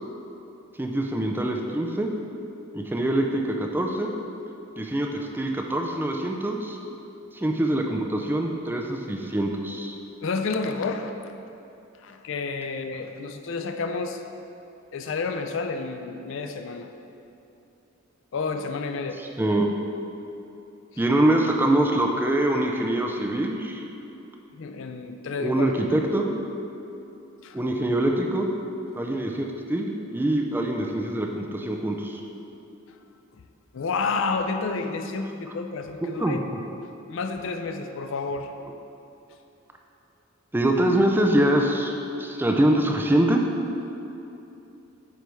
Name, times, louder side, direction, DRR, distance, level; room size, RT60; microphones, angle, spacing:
voice 1, 0.8-2.1 2.7-4.1 4.8-6.8 7.3-9.9 19.4-19.7 21.0-23.8 25.4-26.3 27.5-28.5 28.9-32.2 36.2-36.4 40.5-43.4, right 1 dB, 10° right, 1 dB, 0.4 m, -24 dB
voice 2, 10.2-11.1 12.0-14.2 14.9-16.9 18.3-19.6 24.5-25.7 27.4-27.6 33.7-36.4 37.1-38.5, left 4 dB, 65° left, 6 dB, 0.4 m, -30 dB
9.0 x 3.5 x 4.6 m, 2.8 s
head